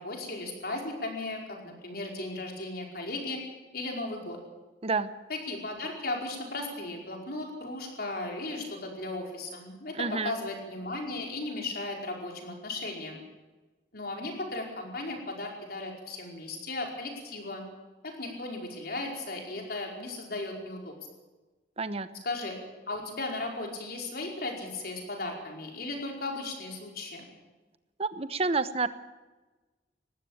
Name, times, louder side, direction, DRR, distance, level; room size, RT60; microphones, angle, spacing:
voice 1, 0.0-3.4 3.7-4.4 5.3-13.2 13.9-17.6 18.0-20.9 22.2-22.6 22.9-27.3, left 2 dB, 60° left, 1 dB, 5.0 m, -36 dB
voice 2, 10.0-10.3 21.8-22.1 28.0-28.9, right 4 dB, 35° right, 12 dB, 1.0 m, -29 dB
20.0 x 15.0 x 8.9 m, 1.2 s
head